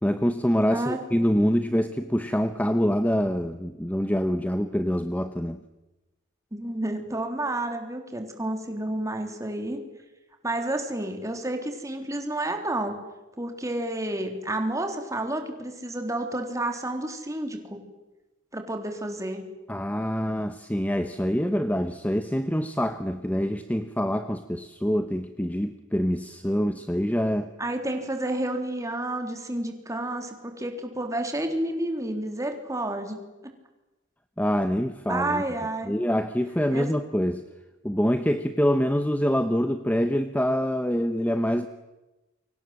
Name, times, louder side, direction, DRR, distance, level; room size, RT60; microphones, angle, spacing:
voice 1, 0.0-5.6 19.7-27.5 34.4-35.4 35.8-37.4 37.8-41.7, equal, 10° left, 9 dB, 0.9 m, -25 dB
voice 2, 6.5-9.8 10.4-12.9 13.4-17.8 18.5-19.4 27.6-33.2 33.4-33.5 35.1-35.9 36.7-36.9, right 1 dB, 15° right, 4 dB, 3.4 m, -30 dB
29.0 x 24.5 x 7.7 m, 1.1 s
head